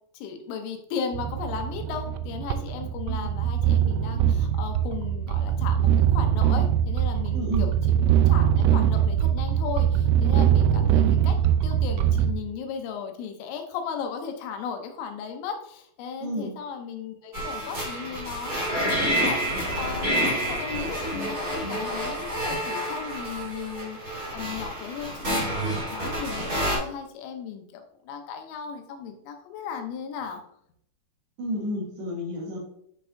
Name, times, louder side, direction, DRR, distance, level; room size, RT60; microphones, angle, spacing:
voice 1, 0.1-11.4 11.6-30.4, left 7 dB, 80° left, 4 dB, 3.3 m, -36 dB
sound 1, 1.1-12.3, right 10 dB, 90° right, 3.3 m, -22 dB
voice 2, 7.3-7.7 16.2-16.5 31.4-32.6, equal, 60° right, -5 dB, 4.0 m, -31 dB
sound 2, 17.3-26.8, equal, 40° right, 1.4 m, -29 dB
10.0 x 5.2 x 2.6 m, 0.69 s
omnidirectional pair, 5.9 m